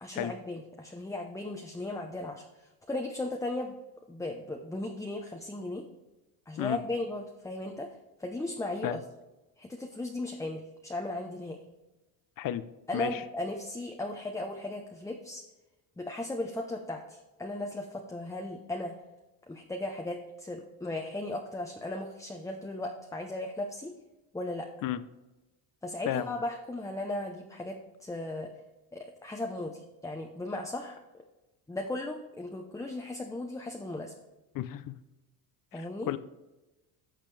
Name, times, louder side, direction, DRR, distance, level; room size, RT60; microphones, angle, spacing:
voice 1, 0.0-2.4 2.9-3.8 4.1-5.9 6.5-7.9 8.2-9.0 9.6-11.6 12.9-15.4 16.0-18.9 19.5-23.9 24.3-24.7 25.8-28.5 28.9-31.0 31.7-34.1 35.7-36.1, left 2 dB, 5° left, 2 dB, 0.8 m, -36 dB
voice 2, 26.1-26.4 34.5-34.9 35.7-36.2, left 12 dB, 55° left, 14 dB, 0.7 m, -33 dB
12.0 x 6.6 x 3.3 m, 1.0 s
cardioid pair, 105°, 41 cm